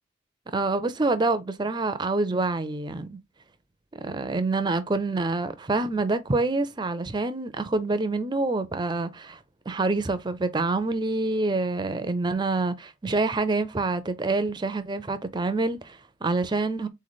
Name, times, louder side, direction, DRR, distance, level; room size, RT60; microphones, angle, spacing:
voice 1, 0.5-3.2 3.9-9.4 9.7-16.9, right 3 dB, 20° right, 0.4 m, -26 dB
4.0 x 3.2 x 4.0 m
head